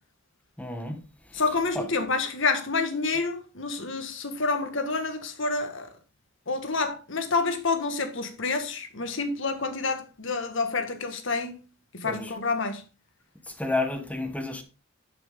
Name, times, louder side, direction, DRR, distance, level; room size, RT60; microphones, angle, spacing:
voice 1, 0.6-1.0 1.3-1.4 1.7-1.9 12.0-12.3 13.5-14.6, left 2 dB, 5° left, 1.1 m, -30 dB
voice 2, 1.3-5.9 6.5-11.6 11.9-12.8, left 4 dB, 65° left, 1.8 m, -28 dB
11.5 x 6.3 x 3.8 m
head